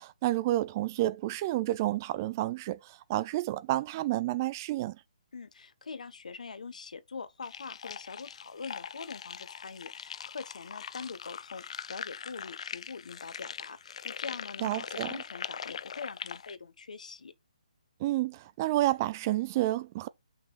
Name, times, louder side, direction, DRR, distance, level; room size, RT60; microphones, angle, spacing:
voice 1, 0.0-5.0 14.6-15.1 18.0-20.1, right 15 dB, 25° right, 0.4 m, -30 dB
voice 2, 5.3-17.3, left 5 dB, 75° left, 1.2 m, -43 dB
sound 1, 7.4-16.5, left 7 dB, 55° left, 0.5 m, -41 dB
5.7 x 4.8 x 5.7 m
hypercardioid pair, 155°, 4 cm